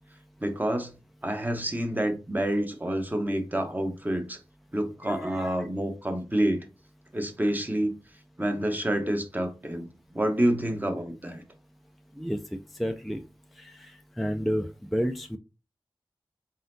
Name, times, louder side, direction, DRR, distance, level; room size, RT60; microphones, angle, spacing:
voice 1, 0.4-0.9 1.2-4.4 4.7-6.6 7.1-7.9 8.4-9.9 10.1-11.4, right 1 dB, 20° right, 1.0 m, -28 dB
voice 2, 5.0-5.5 12.2-13.2 13.6-15.4, equal, ahead, 0.4 m, -31 dB
4.1 x 3.9 x 2.7 m
wide cardioid pair, 60°, 9 cm